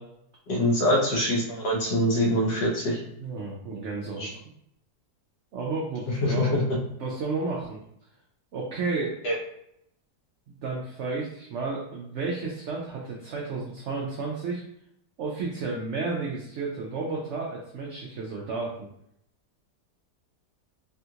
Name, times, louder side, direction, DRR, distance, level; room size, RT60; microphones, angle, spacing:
voice 1, 0.5-3.0 4.2-4.3 6.2-6.5 9.2-9.3, equal, 75° left, -2 dB, 1.5 m, -24 dB
voice 2, 3.2-4.3 5.5-6.5 7.0-7.8 8.5-9.2 10.6-14.6 15.2-18.9, right 3 dB, 70° right, -2 dB, 0.6 m, -32 dB
3.5 x 2.4 x 2.7 m, 0.74 s
omnidirectional pair, 1.8 m